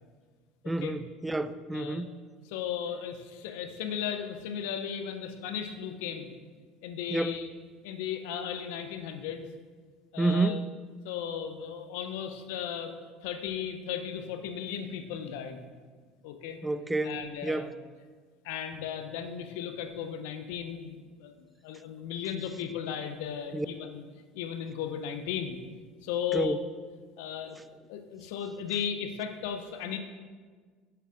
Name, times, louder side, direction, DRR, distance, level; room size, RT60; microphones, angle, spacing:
voice 1, 0.7-2.1 7.1-7.3 10.2-10.6 16.6-17.7 23.5-23.7 26.3-26.6, right 2 dB, 10° right, 13 dB, 0.4 m, -29 dB
voice 2, 1.7-2.0 2.4-6.3 6.8-7.5 7.8-9.4 10.1-10.6 11.0-12.9 13.2-15.6 16.2-16.6 17.0-17.7 18.4-24.0 24.3-25.6 26.0-26.6 27.2-27.6 27.9-30.0, left 8 dB, 70° left, 7 dB, 0.6 m, -36 dB
7.4 x 6.7 x 2.5 m, 1.5 s
hypercardioid pair, 70°, 0 cm